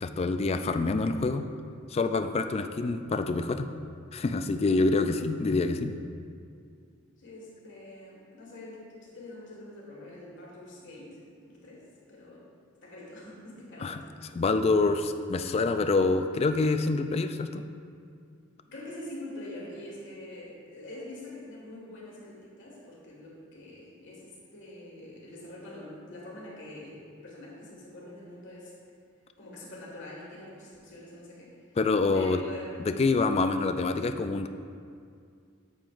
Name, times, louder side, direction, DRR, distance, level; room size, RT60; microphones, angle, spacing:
voice 1, 0.0-1.5 1.9-3.7 4.1-6.0 13.8-14.0 14.4-17.6 31.8-32.4 32.8-34.5, left 3 dB, 30° left, 8 dB, 0.3 m, -26 dB
voice 2, 7.2-11.2 11.5-12.5 12.8-14.0 18.7-27.0 27.2-28.7 29.4-31.5 32.1-32.9, left 1 dB, 60° left, -4 dB, 1.8 m, -45 dB
8.6 x 7.6 x 2.5 m, 2.3 s
head